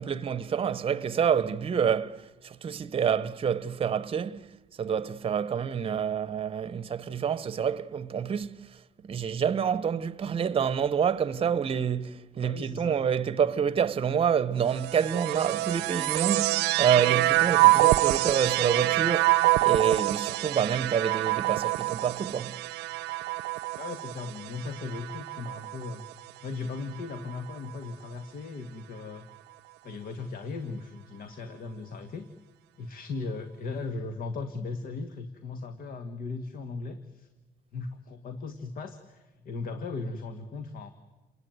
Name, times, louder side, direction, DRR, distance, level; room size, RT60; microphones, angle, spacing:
voice 1, 0.0-4.5 4.8-8.7 9.0-22.6, right 7 dB, 35° right, 0.9 m, -28 dB
voice 2, 12.4-13.0 23.8-26.0 26.4-29.3 29.8-32.3 32.8-37.3 37.7-40.9, left 3 dB, 60° left, 1.8 m, -37 dB
sound 1, 14.7-26.2 27.0-27.7, right 18 dB, 85° right, 0.8 m, -26 dB
28.5 x 19.5 x 9.4 m
cardioid pair, 110°, 17 cm